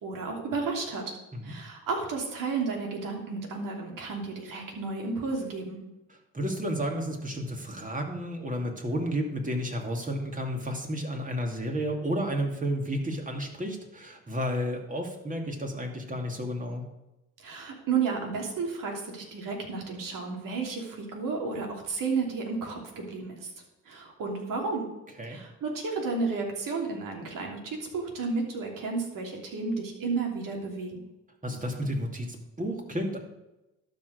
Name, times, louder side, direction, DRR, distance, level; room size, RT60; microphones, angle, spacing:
voice 1, 0.0-1.1 1.4-5.8 17.4-23.5 23.9-24.8 25.2-31.0, right 4 dB, 65° right, 1 dB, 3.0 m, -32 dB
voice 2, 6.3-16.8 25.2-25.4 31.4-33.2, equal, 20° right, 2 dB, 2.6 m, -32 dB
12.0 x 5.2 x 6.5 m, 0.96 s
hypercardioid pair, 60°, 36 cm